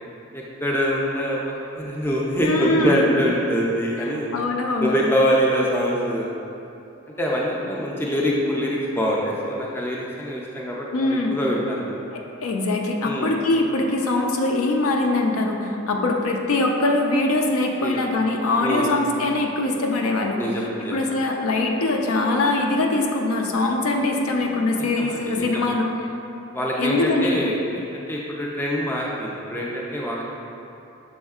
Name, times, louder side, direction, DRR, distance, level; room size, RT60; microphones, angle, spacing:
voice 1, 0.3-1.4 1.8-4.3 4.8-6.3 7.2-11.9 13.0-13.3 17.8-18.1 18.6-18.9 20.4-21.0 24.8-25.7 26.5-30.2, equal, 10° left, -4 dB, 0.3 m, -24 dB
voice 2, 2.4-3.2 4.3-4.9 10.9-11.4 12.1-20.4 20.9-25.9 26.8-27.4, left 2 dB, 85° left, 2 dB, 0.5 m, -22 dB
6.2 x 3.5 x 2.3 m, 2.8 s
head